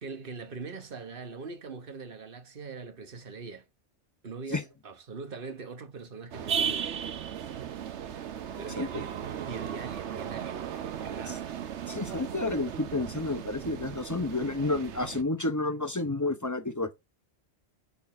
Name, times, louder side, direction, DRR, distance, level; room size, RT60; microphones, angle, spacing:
voice 1, 0.0-3.7 4.2-6.9 8.1-10.7 11.0-11.5, right 4 dB, 55° right, 1.4 m, -42 dB
sound 1, 6.3-15.2, right 8 dB, 85° right, 1.1 m, -36 dB
voice 2, 11.9-17.0, left 2 dB, 20° left, 0.7 m, -30 dB
6.4 x 4.1 x 5.9 m
omnidirectional pair, 1.1 m